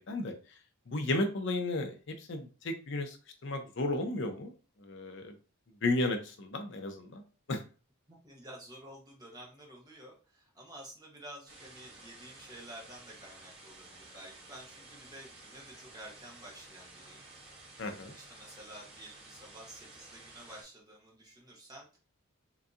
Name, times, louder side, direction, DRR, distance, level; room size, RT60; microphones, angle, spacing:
voice 1, 0.9-3.2 3.4-4.5 4.8-5.3 5.8-7.2 7.5-7.6 17.8-18.1, left 2 dB, 55° left, 5 dB, 0.6 m, -33 dB
voice 2, 8.1-17.2 18.0-22.0, right 1 dB, 15° right, -2 dB, 0.9 m, -51 dB
sound 1, 11.5-20.6, right 2 dB, 55° right, 1.7 m, -53 dB
3.8 x 2.7 x 2.4 m, 0.36 s
head